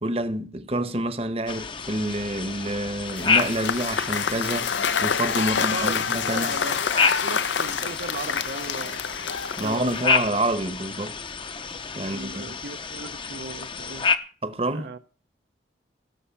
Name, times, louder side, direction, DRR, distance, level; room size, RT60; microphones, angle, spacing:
voice 1, 0.0-4.7 5.0-6.6 9.6-11.1 11.9-12.5 14.4-14.9, right 1 dB, 35° right, 1.0 m, -28 dB
sound 1, 1.5-14.2, left 5 dB, 25° left, 0.7 m, -29 dB
Cheering / Applause / Crowd, 3.1-10.2, left 6 dB, 85° left, 0.8 m, -27 dB
voice 2, 5.4-5.9 6.3-9.0 9.6-10.0 12.1-14.1 14.7-15.0, right 3 dB, 65° right, 0.6 m, -36 dB
17.5 x 7.4 x 5.7 m
head